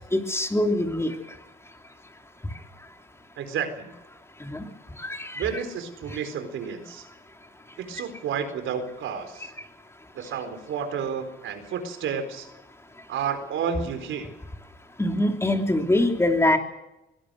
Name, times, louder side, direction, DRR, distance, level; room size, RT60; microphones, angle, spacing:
voice 1, 0.1-1.1 4.4-4.6 5.0-5.4 15.0-16.6, left 1 dB, 15° left, 4 dB, 3.2 m, -23 dB
voice 2, 3.4-3.9 5.4-7.1 7.8-9.5 10.1-12.5 13.1-14.3, right 7 dB, 80° right, 8 dB, 4.1 m, -31 dB
23.5 x 17.5 x 6.5 m, 0.92 s
cardioid pair, 90°, 20 cm